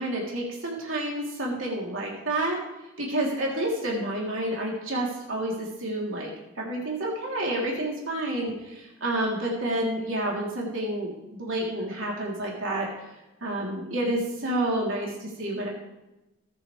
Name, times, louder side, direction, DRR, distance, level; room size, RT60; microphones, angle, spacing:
voice 1, 0.0-2.6 3.0-6.3 6.6-12.9 13.4-15.7, right 1 dB, 75° right, -3 dB, 3.3 m, -29 dB
19.5 x 9.5 x 3.3 m, 0.97 s
head